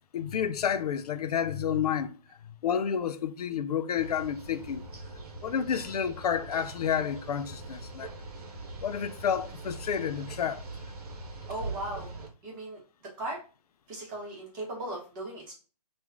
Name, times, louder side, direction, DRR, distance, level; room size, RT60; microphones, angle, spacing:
voice 1, 0.1-2.2 2.6-4.8 5.4-8.1 8.8-10.6, left 8 dB, 70° left, 0.4 m, -30 dB
sound 1, 4.0-12.3, right 2 dB, 65° right, 1.0 m, -42 dB
voice 2, 11.5-12.1 12.4-12.8 13.2-13.4 13.9-15.5, right 1 dB, 30° right, 1.2 m, -37 dB
3.0 x 2.4 x 3.5 m
hypercardioid pair, 145°, 20 cm